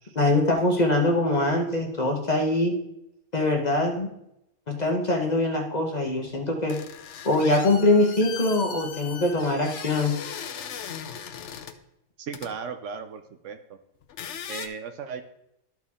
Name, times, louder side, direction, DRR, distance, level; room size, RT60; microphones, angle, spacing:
voice 1, 0.1-2.7 3.3-4.1 4.7-6.8 7.2-10.2, left 2 dB, 35° left, 1 dB, 0.9 m, -23 dB
sound 1, 6.7-11.8 12.3-12.5 14.0-14.7, left 8 dB, 65° left, 0.9 m, -38 dB
voice 2, 12.2-13.8 14.5-15.2, right 6 dB, 70° right, 8 dB, 0.9 m, -36 dB
13.0 x 4.5 x 3.6 m, 0.81 s
omnidirectional pair, 1.4 m